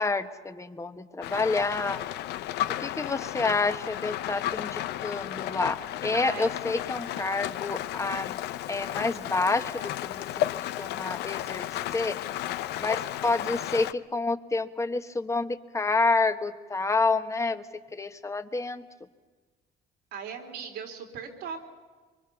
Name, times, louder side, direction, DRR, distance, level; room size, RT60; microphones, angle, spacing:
voice 1, 0.0-2.0 2.8-8.4 8.7-10.2 10.8-12.2 12.8-17.6 17.9-18.9, left 3 dB, 15° left, 9 dB, 1.3 m, -28 dB
Rain, 1.2-13.9, left 13 dB, 80° left, 0.7 m, -33 dB
voice 2, 6.1-6.5 7.2-7.5 11.8-12.3 20.1-21.6, right 6 dB, 85° right, 2 dB, 3.8 m, -39 dB
24.5 x 24.0 x 7.0 m, 1.4 s
cardioid pair, 110°, 17 cm